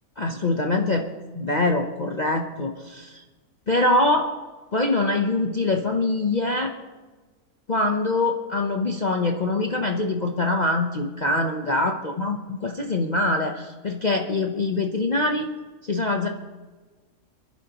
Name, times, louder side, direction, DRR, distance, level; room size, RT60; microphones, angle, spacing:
voice 1, 0.2-1.1 1.3-3.2 3.7-4.3 4.7-6.7 7.7-15.5 15.9-16.3, left 2 dB, 35° left, 3 dB, 0.8 m, -24 dB
25.5 x 10.5 x 3.0 m, 1.3 s
omnidirectional pair, 1.5 m